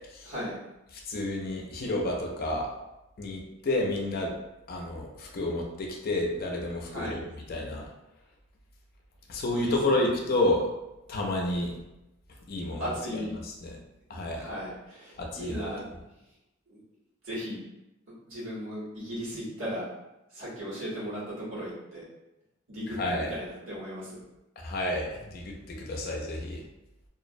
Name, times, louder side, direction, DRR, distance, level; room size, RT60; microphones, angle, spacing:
voice 1, 0.2-0.6 6.9-7.2 9.5-10.1 12.8-13.3 14.3-15.9 16.7-16.8 17.2-17.6 18.3-19.9 20.3-22.0 22.7-24.2, equal, 90° right, -8 dB, 1.1 m, -36 dB
voice 2, 1.1-2.7 3.2-4.3 4.7-7.2 7.5-7.8 9.3-10.6 11.1-11.7 12.5-12.8 13.1-13.2 13.6-13.8 14.1-14.4 15.2-15.6 23.0-23.3 24.6-26.6, left 1 dB, 50° left, 0 dB, 0.4 m, -30 dB
2.4 x 2.0 x 2.5 m, 0.94 s
head